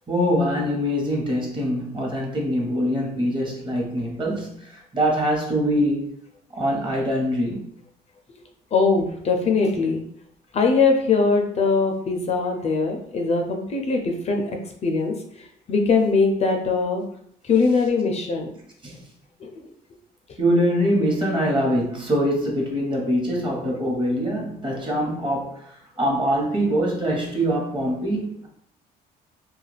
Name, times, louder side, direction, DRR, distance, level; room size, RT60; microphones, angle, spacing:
voice 1, 0.1-6.1 6.5-7.7 18.8-19.0 20.4-28.5, equal, 30° right, -1 dB, 0.9 m, -23 dB
voice 2, 8.7-10.0 10.5-14.4 14.8-15.1 15.7-17.0 17.4-18.5 19.4-19.5, left 4 dB, 40° left, 3 dB, 0.4 m, -21 dB
2.3 x 2.2 x 3.2 m, 0.65 s
cardioid pair, 110°, 17 cm